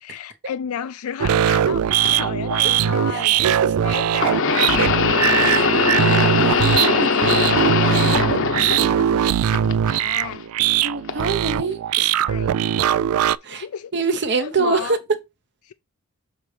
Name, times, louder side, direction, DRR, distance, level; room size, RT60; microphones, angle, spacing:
voice 1, 0.0-3.4 3.8-4.5 5.6-6.1 7.8-8.3 9.9-10.5 12.1-12.5 13.5-13.9 14.4-15.0 15.6-15.7, left 8 dB, 80° left, 0.4 m, -32 dB
sound 1, 1.2-13.4, right 9 dB, 80° right, 0.3 m, -20 dB
sound 2, 2.0-2.1 4.1-9.2 9.5-10.3 11.1-11.2 12.2-12.3, left 5 dB, 65° left, 0.9 m, -20 dB
voice 2, 3.1-3.8 5.4-5.9 6.4-7.5 10.8-12.1 13.4-13.7 13.9-15.0, right 4 dB, 55° right, 0.9 m, -25 dB
6.4 x 5.7 x 3.3 m
head